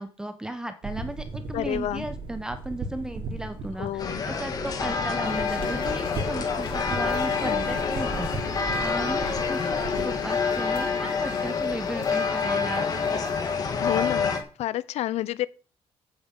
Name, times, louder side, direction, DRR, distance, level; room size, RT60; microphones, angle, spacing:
voice 1, 0.0-8.3 8.8-13.0, right 1 dB, 5° right, 0.9 m, -35 dB
sound 1, 0.8-10.2, right 3 dB, 55° right, 3.2 m, -37 dB
voice 2, 1.5-2.0 3.8-4.2 9.9-10.3 13.8-14.3 14.6-15.5, left 13 dB, 80° left, 0.7 m, -29 dB
sound 2, 4.0-14.4, left 5 dB, 35° left, 2.0 m, -27 dB
sound 3, 5.2-14.4, left 6 dB, 55° left, 1.7 m, -41 dB
9.0 x 8.0 x 8.2 m
cardioid pair, 170°, 11 cm